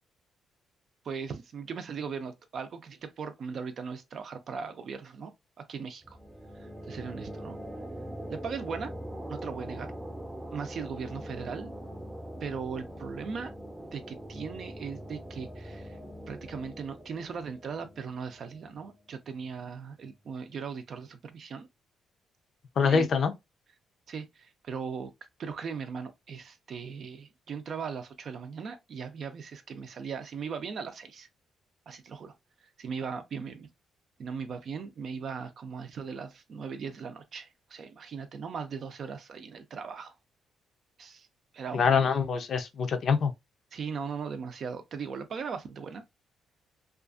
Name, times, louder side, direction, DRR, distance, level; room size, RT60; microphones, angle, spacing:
voice 1, 1.0-5.3 5.6-6.2 6.6-7.6 8.3-8.9 9.3-9.9 10.5-11.7 12.4-13.5 13.9-16.0 16.3-21.7 22.8-23.1 24.1-25.1 25.4-31.3 31.9-32.3 32.6-33.7 34.2-40.1 41.0-41.3 41.5-42.1 43.7-46.0, right 6 dB, 55° right, 0.5 m, -38 dB
sound 1, 6.0-19.4, right 1 dB, 10° right, 0.7 m, -42 dB
voice 2, 22.8-23.3 41.7-43.3, left 6 dB, 55° left, 0.5 m, -24 dB
2.5 x 2.4 x 2.4 m
cardioid pair, 90°, 0 cm